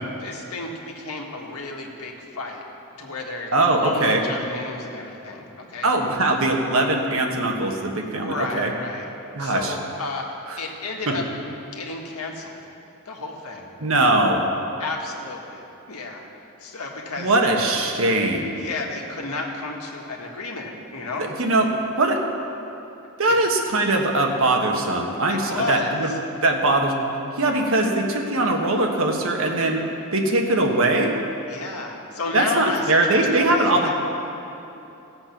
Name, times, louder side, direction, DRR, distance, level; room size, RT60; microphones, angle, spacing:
voice 1, 0.2-2.6 3.0-3.5 3.8-5.9 8.1-9.1 9.4-11.3 11.7-12.6 13.1-13.7 14.8-16.3 16.6-17.3 18.6-21.3 23.3-23.4 25.3-26.1 31.5-33.9, left 3 dB, 90° left, 0 dB, 1.6 m, -32 dB
voice 2, 3.5-4.2 5.8-8.7 9.3-9.7 11.1-11.2 13.8-14.4 17.2-18.5 21.4-21.7 22.0-22.2 23.2-26.1 26.4-26.9 27.4-29.8 30.1-31.2 32.3-33.9, right 2 dB, 65° right, 1 dB, 1.4 m, -21 dB
16.5 x 7.7 x 6.0 m, 2.9 s
head